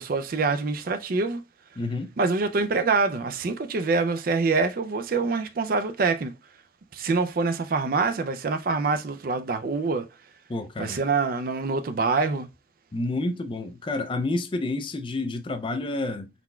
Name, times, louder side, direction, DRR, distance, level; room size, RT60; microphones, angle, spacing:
voice 1, 0.0-1.4 2.2-6.3 6.9-10.1 10.8-12.5, right 4 dB, 50° right, 0.4 m, -25 dB
voice 2, 1.8-2.1 10.5-11.0 12.9-16.3, left 2 dB, 25° left, 0.4 m, -29 dB
4.3 x 4.0 x 2.2 m
head